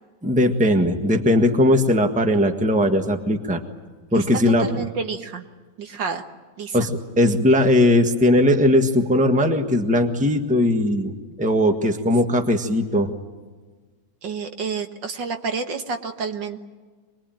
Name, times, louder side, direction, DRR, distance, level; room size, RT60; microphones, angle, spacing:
voice 1, 0.2-3.6 4.1-4.7 6.7-13.1, left 1 dB, 5° right, 5 dB, 1.4 m, -19 dB
voice 2, 4.6-5.5 5.8-6.3 6.6-6.9 14.2-16.6, right 5 dB, 70° right, 6 dB, 2.1 m, -29 dB
26.0 x 21.5 x 9.1 m, 1.4 s
omnidirectional pair, 2.1 m